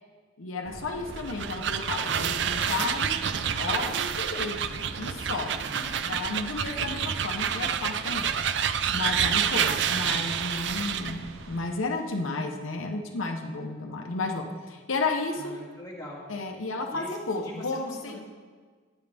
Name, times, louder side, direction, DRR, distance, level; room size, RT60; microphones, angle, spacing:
voice 1, 0.4-3.2 3.6-5.5 6.1-8.3 8.9-15.6 16.3-18.2, left 3 dB, 80° left, 2 dB, 0.9 m, -32 dB
sound 1, 0.6-11.7, right 2 dB, 90° right, 0.9 m, -43 dB
sound 2, 1.1-11.2, right 8 dB, 60° right, 0.4 m, -28 dB
voice 2, 5.5-6.1 15.3-16.3 16.9-18.2, left 1 dB, 20° left, -5 dB, 2.0 m, -42 dB
14.5 x 9.2 x 3.4 m, 1.5 s
head